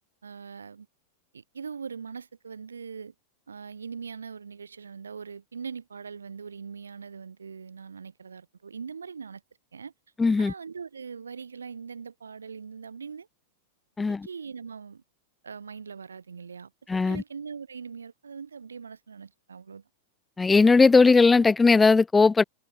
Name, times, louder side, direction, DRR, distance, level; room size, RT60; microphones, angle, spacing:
voice 1, 0.2-0.9 1.3-3.1 3.5-9.4 9.7-9.9 10.4-13.3 14.2-15.0 15.4-16.7 17.0-19.8, right 6 dB, 80° right, 6.4 m, -41 dB
voice 2, 10.2-10.5 14.0-14.3 16.9-17.2 20.4-22.4, left 4 dB, 15° left, 2.8 m, -18 dB
figure-of-eight pair, 95°, 0 cm